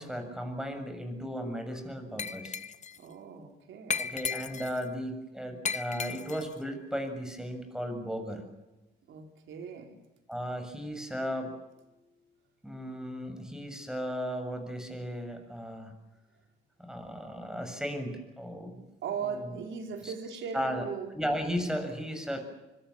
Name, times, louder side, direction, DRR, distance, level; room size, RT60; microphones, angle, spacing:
voice 1, 0.0-2.6 4.0-8.5 10.3-11.6 12.6-15.9 16.8-18.8 19.4-19.6 20.0-20.1 20.5-20.8 21.1-22.4, equal, 5° right, 6 dB, 7.1 m, -35 dB
Glass, 2.2-3.0 3.9-4.8 5.6-6.5, left 6 dB, 35° left, 0.9 m, -35 dB
voice 2, 3.0-4.0 9.1-10.0 19.0-21.1 22.3-22.4, right 6 dB, 75° right, 4 dB, 4.4 m, -38 dB
25.5 x 24.0 x 7.2 m, 1.0 s
cardioid pair, 90°, 20 cm